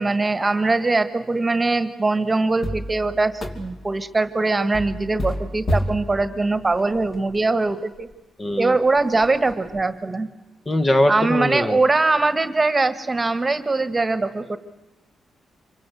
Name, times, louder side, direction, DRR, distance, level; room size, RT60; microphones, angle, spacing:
voice 1, 0.0-8.1 8.6-10.3 11.1-14.6, right 3 dB, 20° right, 12 dB, 1.6 m, -21 dB
sound 1, 2.6-4.0 4.7-7.4 8.0-8.1 8.5-8.6 9.0-9.8, equal, 35° left, 3.0 m, -30 dB
voice 2, 8.4-8.7 10.7-11.8, left 1 dB, 20° left, 8 dB, 1.3 m, -21 dB
26.5 x 23.5 x 7.9 m, 1.1 s
cardioid pair, 115°, 0 cm